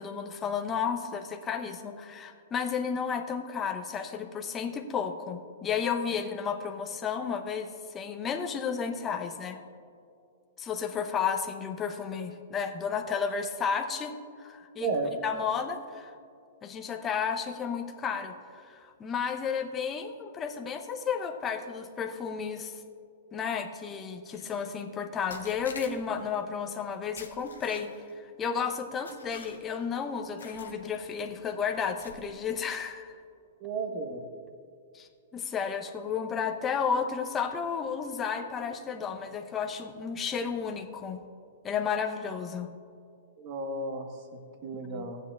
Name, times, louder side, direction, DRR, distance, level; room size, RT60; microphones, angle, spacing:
voice 1, 0.0-9.6 10.6-14.9 15.2-16.1 16.6-22.8 23.3-33.1 34.9-41.2 41.6-42.7 44.9-45.1, left 6 dB, 20° left, 4 dB, 0.7 m, -32 dB
voice 2, 14.8-15.1 33.6-34.2 43.4-45.2, right 3 dB, 45° right, 5 dB, 1.2 m, -33 dB
sound 1, 24.3-24.5 25.3-26.3 27.2-28.1 29.1-29.8 30.4-30.8 31.1-31.4 32.0-32.4, left 5 dB, 85° left, 0.9 m, -47 dB
15.0 x 8.2 x 2.3 m, 2.4 s
hypercardioid pair, 120°, 0 cm